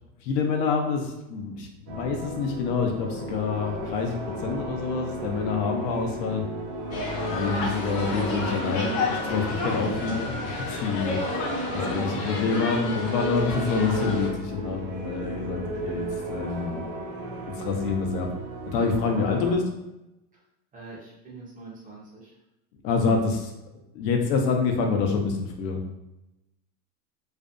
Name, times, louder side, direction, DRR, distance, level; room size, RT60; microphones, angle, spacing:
voice 1, 0.2-4.2 4.4-6.4 7.3-11.4 11.7-16.8 17.5-18.3 18.6-19.6 22.8-23.5 23.9-25.8, left 5 dB, 85° left, 2 dB, 0.7 m, -27 dB
sound 1, 1.9-19.6, right 1 dB, 50° right, 0.7 m, -35 dB
sound 2, 6.9-14.3, left 2 dB, 50° left, 0.7 m, -31 dB
voice 2, 20.7-22.4, right 3 dB, 20° right, -5 dB, 0.4 m, -44 dB
2.5 x 2.1 x 2.4 m, 0.92 s
supercardioid pair, 130°, 48 cm